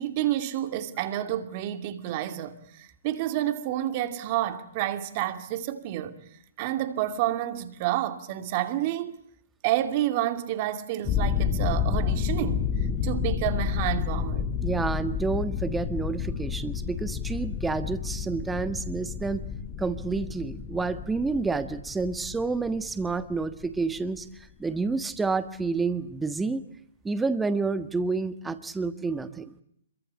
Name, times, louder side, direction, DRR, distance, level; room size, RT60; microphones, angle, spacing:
voice 1, 0.0-6.2 6.6-9.2 9.6-14.5, right 13 dB, 40° right, 2.6 m, -29 dB
sound 1, 11.0-24.2, left 7 dB, 20° left, 1.9 m, -30 dB
voice 2, 14.6-19.4 19.8-24.3 24.6-26.6 27.0-29.5, right 4 dB, 5° right, 1.6 m, -29 dB
26.5 x 23.5 x 8.5 m
hypercardioid pair, 135°, 0 cm